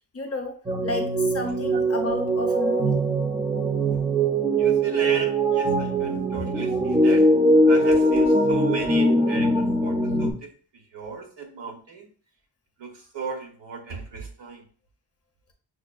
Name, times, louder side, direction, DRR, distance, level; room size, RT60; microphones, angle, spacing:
voice 1, 0.1-0.6 0.8-3.0, left 3 dB, 35° left, 3 dB, 0.6 m, -31 dB
sound 1, 0.7-10.3, right 1 dB, 15° right, 0.4 m, -21 dB
voice 2, 4.6-7.2 7.7-10.3 10.9-12.1 12.8-14.6, right 4 dB, 75° right, 2 dB, 1.0 m, -35 dB
6.0 x 2.2 x 2.3 m, 0.41 s
wide cardioid pair, 145°, 44 cm